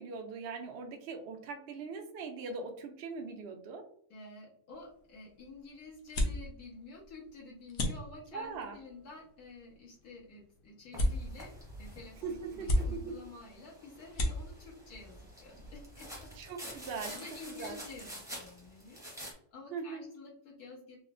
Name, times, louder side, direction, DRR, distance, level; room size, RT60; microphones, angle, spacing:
voice 1, 0.0-3.8 8.3-8.8 12.2-13.1 16.4-17.1 17.5-17.8 19.7-20.0, right 4 dB, 70° right, 3 dB, 0.6 m, -41 dB
voice 2, 4.1-16.3 16.6-21.0, left 3 dB, 85° left, -5 dB, 1.7 m, -50 dB
sound 1, 4.7-16.2, left 1 dB, 65° left, 1.0 m, -38 dB
sound 2, 10.9-19.3, equal, 5° right, 0.6 m, -48 dB
4.1 x 2.0 x 2.4 m, 0.66 s
omnidirectional pair, 1.6 m